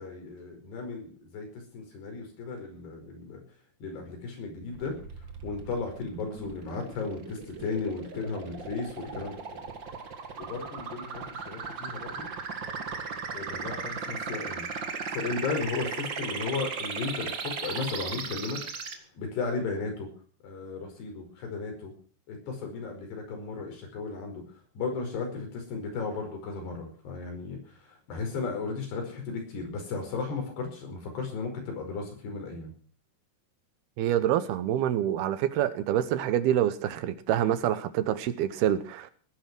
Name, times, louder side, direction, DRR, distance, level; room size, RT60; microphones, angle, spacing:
voice 1, 0.0-3.4 3.8-5.0 5.4-9.6 10.4-12.3 13.3-14.7 15.1-18.6 19.2-20.1 20.4-21.9 22.3-24.4 24.8-27.6 27.9-32.7, left 4 dB, 85° left, 3 dB, 7.2 m, -35 dB
sound 1, 4.7-18.9, right 5 dB, 45° right, 1.6 m, -37 dB
voice 2, 34.0-39.1, right 11 dB, 75° right, 13 dB, 3.0 m, -26 dB
18.5 x 10.5 x 6.2 m, 0.43 s
omnidirectional pair, 4.6 m